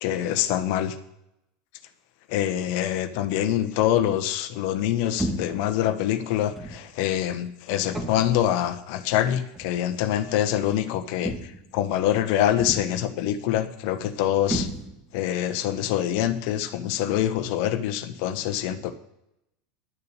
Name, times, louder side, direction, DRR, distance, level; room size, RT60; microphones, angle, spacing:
voice 1, 0.0-1.0 2.3-14.7 15.1-18.9, left 11 dB, 55° left, 9 dB, 1.3 m, -25 dB
sound 1, 5.2-5.7 6.6-6.9 7.9-8.4 9.5-9.8 11.2-11.7 12.6-13.1 14.5-15.2, right 1 dB, 15° right, 2.1 m, -32 dB
10.5 x 6.8 x 8.3 m, 0.84 s
figure-of-eight pair, 80°, 0 cm